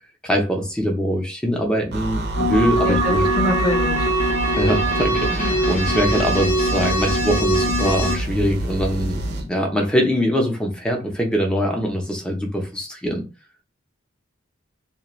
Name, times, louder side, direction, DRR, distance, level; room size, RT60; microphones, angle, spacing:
voice 1, 0.2-3.3 4.5-13.2, equal, 5° left, 0.5 m, -22 dB
sound 1, 1.9-9.5, right 1 dB, 55° right, 0.5 m, -27 dB
sound 2, 2.3-8.2, right 1 dB, 40° left, 0.8 m, -22 dB
voice 2, 2.8-4.1, left 1 dB, 75° left, 1.0 m, -25 dB
2.4 x 2.1 x 3.0 m
head